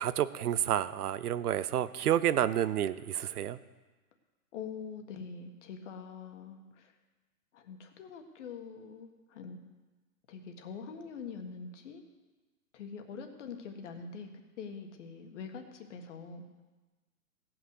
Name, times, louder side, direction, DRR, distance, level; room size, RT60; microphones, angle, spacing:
voice 1, 0.0-3.6, right 11 dB, 75° right, 15 dB, 0.8 m, -29 dB
voice 2, 4.5-6.9 7.5-9.6 10.3-12.0 12.7-16.4, left 5 dB, 50° left, 6 dB, 1.6 m, -44 dB
17.5 x 6.0 x 6.5 m, 1.2 s
hypercardioid pair, 150°, 45 cm